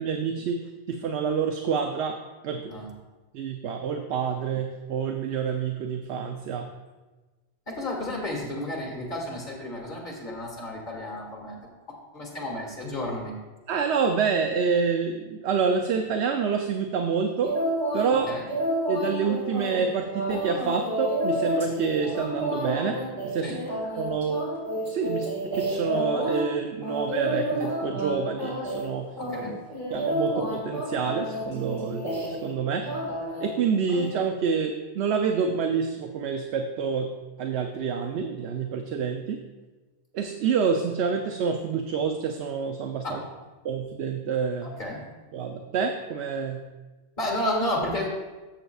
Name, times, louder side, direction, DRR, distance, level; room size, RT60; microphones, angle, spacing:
voice 1, 0.0-2.2 2.4-2.7 3.3-6.7 13.7-17.6 17.9-18.3 18.9-23.6 24.0-24.5 24.9-25.3 25.5-29.2 29.9-32.1 32.4-32.9 33.4-39.4 40.1-43.2 43.6-44.7 45.3-46.7, right 6 dB, 75° right, 5 dB, 0.9 m, -27 dB
voice 2, 7.7-11.6 12.1-13.4 18.3-18.5 23.4-23.6 29.2-29.5 43.0-43.2 44.6-45.0 47.2-48.1, left 1 dB, 45° left, -1 dB, 2.2 m, -31 dB
sound 1, 17.4-18.1 18.5-26.4 26.8-28.1 28.4-28.9 29.2-32.5 32.8-33.5 33.9-34.1, equal, 60° right, 3.5 m, -30 dB
13.0 x 7.5 x 2.4 m, 1.2 s
omnidirectional pair, 1.2 m